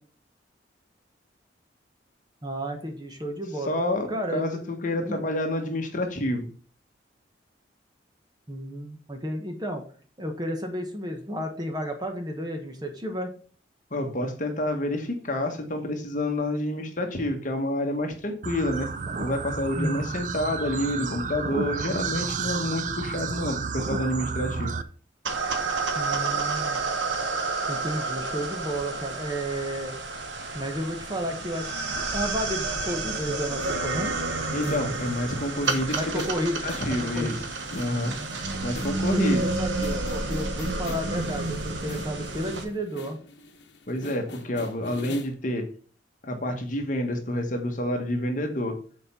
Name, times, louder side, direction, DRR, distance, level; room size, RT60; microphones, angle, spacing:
voice 1, 2.4-3.7 4.1-4.4 5.0-5.2 8.5-9.8 10.2-13.3 19.7-20.1 25.9-26.8 27.7-30.0 30.5-34.2 35.9-36.6 36.9-37.4 38.9-43.2, equal, 25° right, 4 dB, 1.1 m, -32 dB
voice 2, 3.7-6.5 13.9-18.9 19.2-24.8 34.5-36.2 36.6-37.4 37.7-38.1 38.6-39.4 43.9-45.6 46.2-48.8, left 1 dB, 45° left, 4 dB, 1.3 m, -28 dB
sound 1, 18.4-24.8, right 5 dB, 45° right, 0.4 m, -31 dB
sound 2, 25.3-42.7, right 3 dB, 90° right, 1.1 m, -30 dB
sound 3, 33.1-45.4, left 2 dB, 70° left, 1.0 m, -44 dB
6.7 x 4.3 x 5.3 m, 0.43 s
head